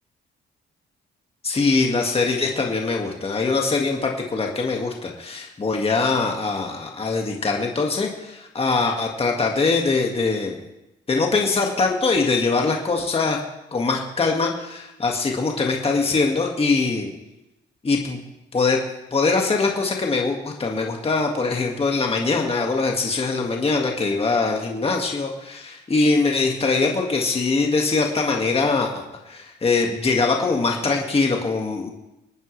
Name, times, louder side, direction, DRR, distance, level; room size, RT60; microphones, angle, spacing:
voice 1, 1.4-10.6 11.1-13.4 13.7-17.1 17.8-18.2 18.5-18.8 19.1-31.9, left 3 dB, 30° left, 1 dB, 1.9 m, -22 dB
26.0 x 9.2 x 3.3 m, 0.91 s
cardioid pair, 90°, 20 cm